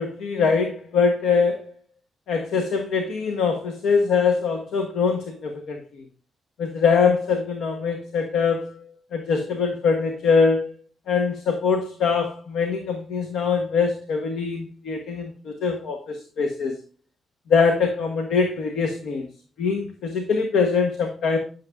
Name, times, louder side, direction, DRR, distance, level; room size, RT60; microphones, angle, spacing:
voice 1, 0.0-1.7 2.3-5.8 6.6-10.7 11.1-16.7 17.5-19.3 19.6-21.4, left 5 dB, 80° left, 5 dB, 0.9 m, -23 dB
10.5 x 6.4 x 2.3 m, 0.42 s
supercardioid pair, 60°, 0 cm